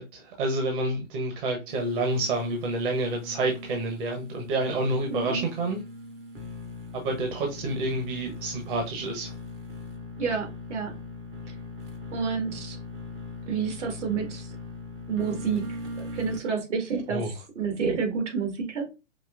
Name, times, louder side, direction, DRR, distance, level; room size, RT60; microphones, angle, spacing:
voice 1, 0.0-5.8 6.9-9.3 17.1-17.3, right 2 dB, 40° right, 1.1 m, -29 dB
sound 1, 1.7-16.5, left 2 dB, 20° right, 0.5 m, -40 dB
voice 2, 5.1-5.4 10.2-10.9 11.5-11.6 12.1-12.8 13.5-14.5 15.1-18.9, right 5 dB, 65° right, 1.9 m, -29 dB
5.3 x 2.9 x 2.5 m
hypercardioid pair, 135°, 38 cm